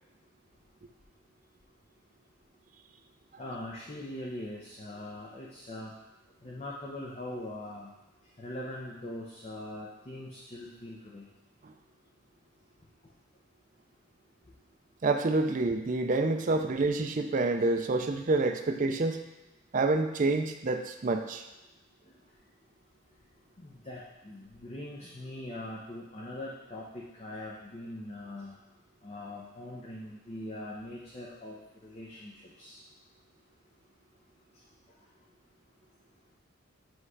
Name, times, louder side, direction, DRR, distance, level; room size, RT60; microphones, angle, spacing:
voice 1, 3.4-5.9 6.4-7.9 8.4-11.2 23.6-28.6 29.0-32.8, left 1 dB, 30° left, -4 dB, 0.7 m, -42 dB
voice 2, 15.0-19.2 19.7-21.4, right 3 dB, 40° right, 6 dB, 0.4 m, -28 dB
7.9 x 3.2 x 4.7 m, 1.0 s
head